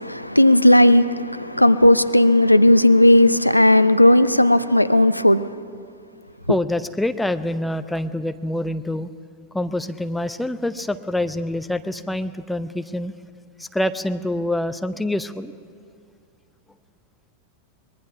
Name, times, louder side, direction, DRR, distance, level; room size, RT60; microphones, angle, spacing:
voice 1, 0.0-5.5, left 1 dB, 90° left, 0.6 m, -15 dB
voice 2, 6.5-9.1 9.5-13.1 13.6-15.5, left 1 dB, 5° left, 0.7 m, -26 dB
23.5 x 21.0 x 6.0 m
figure-of-eight pair, 90°, 0 cm